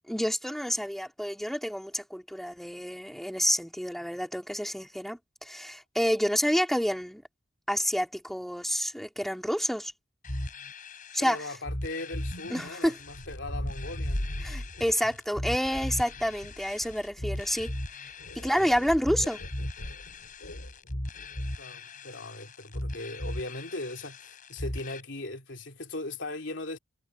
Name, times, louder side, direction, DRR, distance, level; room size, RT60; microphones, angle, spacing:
voice 1, 0.1-7.2 7.7-9.9 11.1-11.4 12.5-13.0 14.4-17.7 18.4-19.4, equal, ahead, 4.1 m, -29 dB
sound 1, 10.2-25.0, left 1 dB, 45° left, 5.8 m, -38 dB
voice 2, 11.2-14.3 21.6-26.8, left 2 dB, 65° left, 3.3 m, -39 dB
sound 2, 12.3-21.4, left 1 dB, 90° left, 2.9 m, -41 dB
head